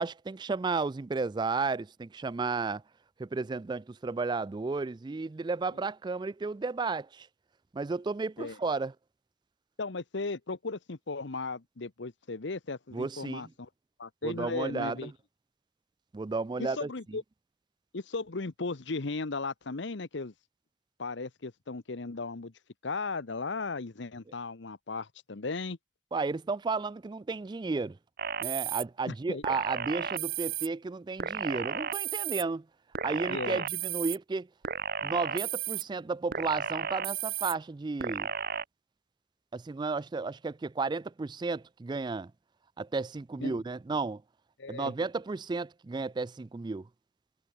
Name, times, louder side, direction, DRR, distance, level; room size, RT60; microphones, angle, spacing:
voice 1, 0.0-2.8 3.2-7.3 7.7-8.9 12.9-13.5 14.2-15.1 16.1-17.2 26.1-28.0 28.4-32.6 33.0-34.5 35.0-38.3 39.5-42.3 42.8-44.2 44.7-46.9, right 4 dB, 25° right, 0.3 m, -33 dB
voice 2, 9.8-13.7 14.0-15.1 16.6-17.2 17.9-20.3 21.0-22.5 22.8-25.8 29.1-29.4 33.3-33.6 43.4-43.6 44.6-44.9, left 3 dB, 65° left, 0.9 m, -36 dB
sound 1, 28.2-28.8 29.4-30.7 31.2-32.4 32.9-34.2 34.6-35.8 36.3-37.5 38.0-38.6, right 8 dB, 50° right, 1.0 m, -33 dB
head